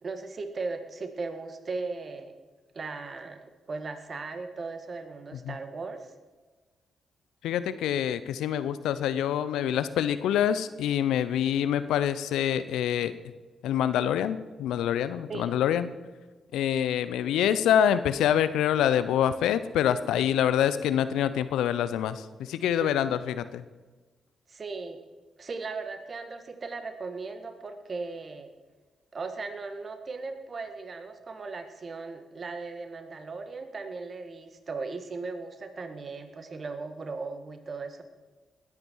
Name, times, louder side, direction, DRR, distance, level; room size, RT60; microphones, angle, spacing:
voice 1, 0.0-2.3 2.7-6.1 15.3-15.6 22.8-23.0 24.5-25.0 25.4-28.5 29.1-38.0, right 4 dB, 45° right, 8 dB, 1.8 m, -37 dB
voice 2, 7.4-13.1 13.6-15.9 16.5-23.6, left 10 dB, 75° left, 14 dB, 0.6 m, -26 dB
19.5 x 8.9 x 4.7 m, 1.3 s
hypercardioid pair, 45°, 0 cm